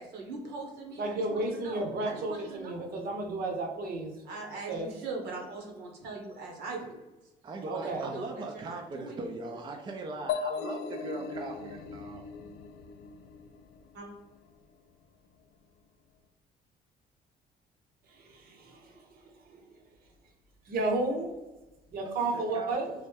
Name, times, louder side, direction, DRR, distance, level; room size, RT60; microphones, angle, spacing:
voice 1, 0.0-2.9 4.2-7.0 7.7-9.4 13.9-14.1, right 3 dB, 80° right, 0 dB, 1.2 m, -41 dB
voice 2, 1.0-4.2 4.7-4.9 7.7-8.1 18.3-18.9 20.7-21.3 21.9-22.9, right 2 dB, 60° right, 2 dB, 0.9 m, -32 dB
voice 3, 7.4-12.3 22.3-22.8, right 2 dB, 30° right, 3 dB, 0.4 m, -40 dB
sound 1, 10.3-14.0, left 6 dB, 70° left, 0.4 m, -37 dB
3.2 x 2.6 x 3.3 m, 1.1 s
cardioid pair, 110°, 17 cm